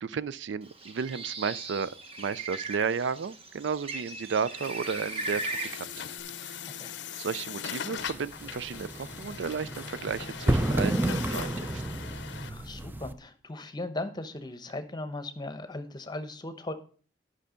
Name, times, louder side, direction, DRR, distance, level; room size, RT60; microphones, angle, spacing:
voice 1, 0.0-5.9 6.4-6.6 7.2-11.8, right 6 dB, 90° right, 0.4 m, -33 dB
Bird, 0.7-6.2, right 2 dB, 35° right, 1.2 m, -38 dB
Truck, 4.5-12.5, left 8 dB, 75° left, 0.6 m, -40 dB
sound 1, 8.0-13.1, right 1 dB, 10° right, 0.5 m, -31 dB
voice 2, 12.5-16.7, left 2 dB, 25° left, 0.9 m, -38 dB
11.0 x 5.7 x 5.1 m
head